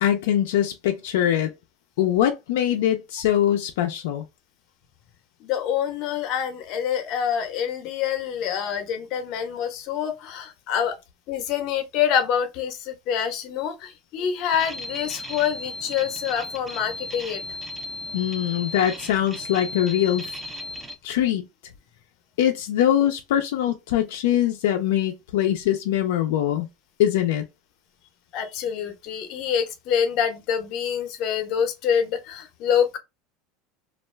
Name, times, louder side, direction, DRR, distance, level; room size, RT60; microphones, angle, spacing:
voice 1, 0.0-1.5 2.0-4.3 18.1-20.2 21.0-21.4 22.4-26.7 27.0-27.4, left 11 dB, 90° left, 0.4 m, -22 dB
voice 2, 5.4-11.0 11.3-17.4 28.3-33.0, left 8 dB, 50° left, 0.7 m, -26 dB
sound 1, 14.5-21.0, left 2 dB, 5° right, 0.5 m, -36 dB
2.4 x 2.2 x 3.1 m
supercardioid pair, 145°, 0 cm